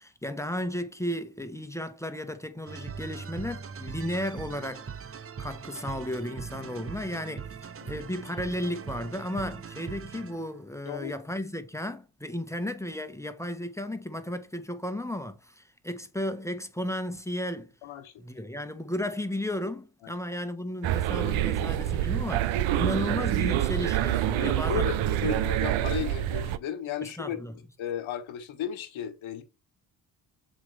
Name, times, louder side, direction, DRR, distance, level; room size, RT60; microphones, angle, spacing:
voice 1, 0.0-17.7 18.2-25.3 27.0-27.5, left 1 dB, 5° left, 1.3 m, -34 dB
sound 1, 2.7-10.6, right 6 dB, 30° right, 0.7 m, -41 dB
voice 2, 17.8-18.1 20.0-20.2 24.4-27.4 27.8-29.4, left 9 dB, 70° left, 1.5 m, -35 dB
sound 2, 20.8-26.6, right 12 dB, 70° right, 0.7 m, -26 dB
7.4 x 4.7 x 3.4 m
hypercardioid pair, 45°, 49 cm